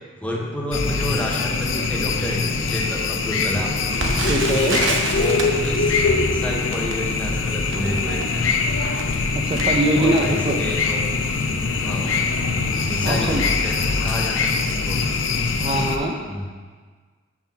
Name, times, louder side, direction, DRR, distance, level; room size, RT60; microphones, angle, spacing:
voice 1, 0.2-3.7 5.2-8.5 10.0-11.0 11.8-12.1 12.8-14.5 14.8-15.0 16.3-16.5, left 1 dB, 5° left, -1 dB, 0.9 m, -30 dB
sound 1, 0.7-16.0, left 4 dB, 80° left, 0.6 m, -23 dB
Crackle, 3.9-10.9 11.5-11.6 11.9-12.2 12.8-13.0 13.3-13.4, right 2 dB, 75° right, 1.0 m, -30 dB
voice 2, 4.3-4.8 9.3-10.6 13.0-13.5 15.6-16.2, right 1 dB, 30° right, 1 dB, 0.5 m, -22 dB
6.0 x 5.8 x 5.6 m, 1.5 s
head